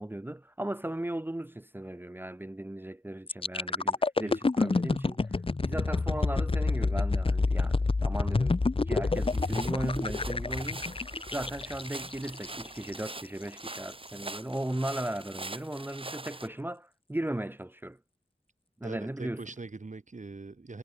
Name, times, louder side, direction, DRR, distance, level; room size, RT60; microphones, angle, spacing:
voice 1, 0.0-5.3 5.6-8.6 8.9-11.0 11.3-18.0 18.8-19.4, right 1 dB, 15° right, 0.6 m, -36 dB
sound 1, 3.3-13.1 13.6-13.8, left 3 dB, 45° left, 0.8 m, -28 dB
sound 2, 9.1-16.5, right 2 dB, 45° right, 6.0 m, -43 dB
voice 2, 18.8-20.8, right 3 dB, 70° right, 6.5 m, -42 dB
wide cardioid pair, 50°, 13 cm